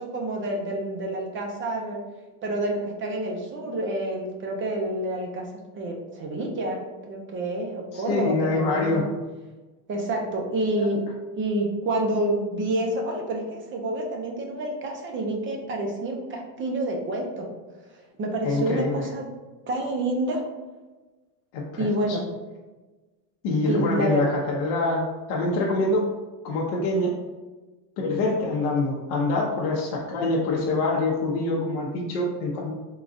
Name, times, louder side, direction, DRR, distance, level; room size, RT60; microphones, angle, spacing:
voice 1, 0.0-2.0 2.4-5.5 5.7-9.0 9.9-11.0 11.4-17.5 17.9-19.3 19.7-20.4 21.8-22.3 23.7-24.3, right 1 dB, 25° right, 1 dB, 0.6 m, -28 dB
voice 2, 7.9-9.0 10.8-10.9 18.4-19.0 21.5-22.2 23.4-26.1 26.4-27.1 28.0-32.7, left 2 dB, 65° left, -3 dB, 0.8 m, -25 dB
3.8 x 2.3 x 3.8 m, 1.2 s
supercardioid pair, 130°, 50 cm